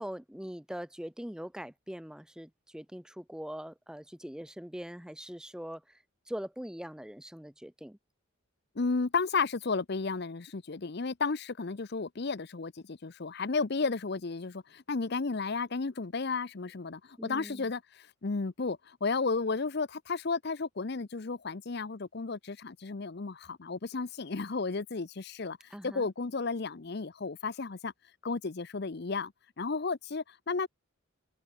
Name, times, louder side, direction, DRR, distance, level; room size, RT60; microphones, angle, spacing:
voice 1, 0.0-6.0 6.3-8.0 17.2-17.7 25.7-26.1, equal, 5° right, 0.6 m, -42 dB
voice 2, 8.8-25.6 25.8-27.9 28.2-30.7, left 4 dB, 50° left, 0.7 m, -33 dB
head